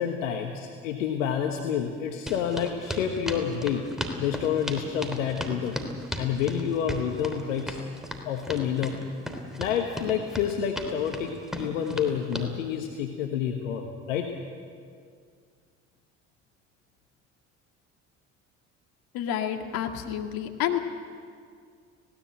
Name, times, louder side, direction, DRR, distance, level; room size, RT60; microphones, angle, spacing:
voice 1, 0.0-3.8 4.2-5.7 6.2-7.8 8.2-8.9 9.6-14.3, left 8 dB, 80° left, 4 dB, 1.4 m, -28 dB
sound 1, 2.3-12.5, equal, ahead, 3.3 m, -35 dB
voice 2, 19.1-20.8, left 10 dB, 65° left, 5 dB, 2.0 m, -29 dB
19.0 x 17.0 x 8.9 m, 2.1 s
hypercardioid pair, 55°, 38 cm